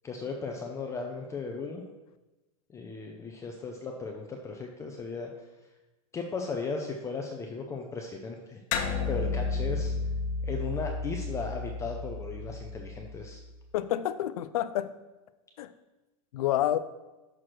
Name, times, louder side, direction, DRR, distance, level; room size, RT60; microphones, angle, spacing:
voice 1, 0.0-1.8 2.7-5.3 6.1-8.6 9.1-9.9 10.4-13.4, left 4 dB, 15° left, 1 dB, 0.6 m, -36 dB
sound 1, 8.7-13.5, left 4 dB, 50° left, 1.2 m, -32 dB
voice 2, 13.7-14.9 15.6-15.7 16.3-16.8, left 12 dB, 70° left, 13 dB, 0.5 m, -28 dB
6.2 x 4.8 x 5.9 m, 1.1 s
hypercardioid pair, 135°, 19 cm